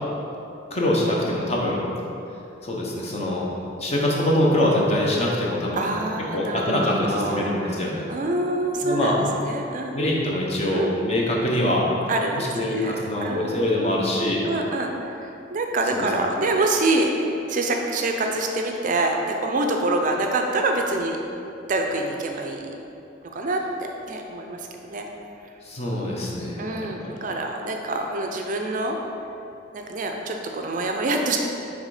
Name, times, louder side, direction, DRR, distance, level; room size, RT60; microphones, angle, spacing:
voice 1, 0.7-1.8 2.6-3.5 3.8-5.9 6.3-8.1 8.8-9.2 9.9-11.9 12.4-14.4 15.9-16.1 25.6-27.2, left 1 dB, 35° left, -3 dB, 0.9 m, -24 dB
voice 2, 5.7-10.0 10.7-10.9 12.1-14.2 14.4-21.2 21.7-22.7 23.2-25.1 26.6-29.0 29.7-31.4, right 2 dB, 40° right, 3 dB, 0.4 m, -26 dB
6.4 x 3.5 x 4.8 m, 2.8 s
head